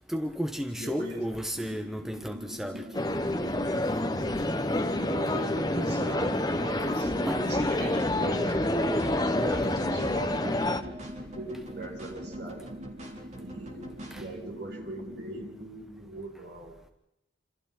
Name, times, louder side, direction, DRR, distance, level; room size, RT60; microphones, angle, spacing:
voice 1, 0.1-2.8 4.7-4.8 5.9-6.3 7.2-7.5 14.1-14.2, equal, ahead, 1.2 m, -33 dB
voice 2, 0.7-1.3 4.9-7.1 7.4-10.9 11.4-12.7 13.3-16.9, right 1 dB, 55° right, 7.1 m, -40 dB
sound 1, 1.5-15.6, equal, 80° right, 3.0 m, -44 dB
sound 2, 2.9-10.8, left 1 dB, 20° left, 1.3 m, -28 dB
sound 3, 7.0-14.2, equal, 35° right, 4.5 m, -41 dB
28.5 x 28.0 x 4.5 m
head